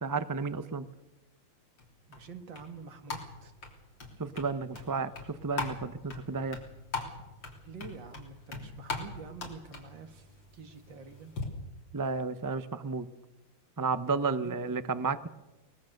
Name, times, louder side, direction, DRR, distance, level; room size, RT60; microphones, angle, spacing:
voice 1, 0.0-0.9 4.2-6.6 11.9-13.1 13.8-15.3, right 4 dB, 30° right, 12 dB, 0.4 m, -32 dB
sound 1, 1.8-11.4, left 3 dB, 85° left, 4.1 m, -42 dB
voice 2, 2.1-3.5 7.6-10.3 10.5-11.4 14.2-14.8, right 5 dB, 80° right, 7 dB, 2.5 m, -47 dB
23.5 x 20.0 x 6.6 m, 1.0 s
omnidirectional pair, 2.0 m